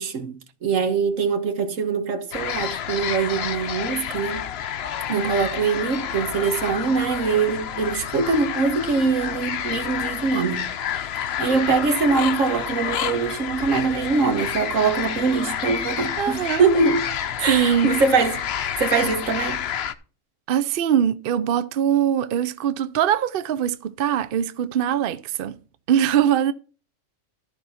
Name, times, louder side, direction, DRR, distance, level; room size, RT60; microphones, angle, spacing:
voice 1, 0.0-4.5 5.1-10.7 11.4-17.0 17.4-19.7, right 4 dB, 80° right, 1.6 m, -23 dB
sound 1, 2.3-19.9, left 9 dB, 60° left, 0.8 m, -29 dB
voice 2, 16.2-16.7 17.5-18.0 20.5-25.6 25.9-26.5, right 9 dB, 60° right, 0.6 m, -22 dB
13.0 x 4.6 x 5.6 m
omnidirectional pair, 1.3 m